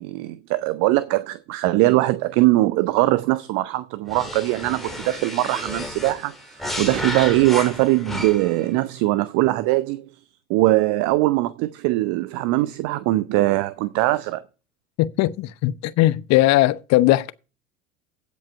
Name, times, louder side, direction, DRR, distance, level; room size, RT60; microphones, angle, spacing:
voice 1, 0.0-6.3 6.8-10.1 10.5-14.4, right 18 dB, 50° right, 0.7 m, -21 dB
sound 1, 4.1-8.6, left 1 dB, ahead, 2.3 m, -32 dB
voice 2, 15.0-17.3, left 16 dB, 45° left, 0.8 m, -19 dB
16.0 x 5.3 x 4.6 m
figure-of-eight pair, 75°, 40 cm